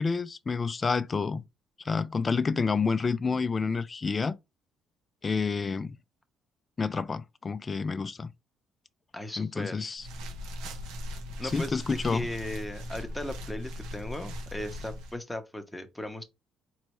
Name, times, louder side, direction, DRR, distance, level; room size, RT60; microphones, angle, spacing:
voice 1, 0.0-1.4 1.8-4.3 5.2-6.0 6.8-8.3 9.4-10.0 11.5-12.3, left 4 dB, 25° left, 0.3 m, -29 dB
voice 2, 9.1-10.0 11.4-11.8 12.0-16.2, left 1 dB, 5° left, 0.8 m, -37 dB
sound 1, 10.0-15.1, equal, 90° right, 0.9 m, -39 dB
4.2 x 3.1 x 2.9 m
cardioid pair, 115°, 0 cm